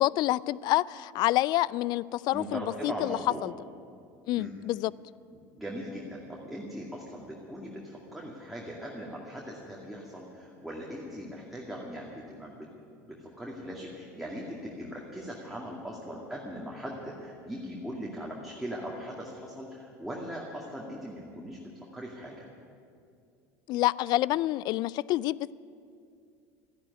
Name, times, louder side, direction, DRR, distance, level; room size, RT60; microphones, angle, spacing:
voice 1, 0.0-3.5 4.3-4.9 23.7-25.5, left 16 dB, 55° left, 0.3 m, -27 dB
voice 2, 2.3-3.5 4.3-4.5 5.3-12.7 13.0-22.5, equal, ahead, 2.2 m, -40 dB
13.5 x 10.5 x 9.7 m
supercardioid pair, 95°, 9 cm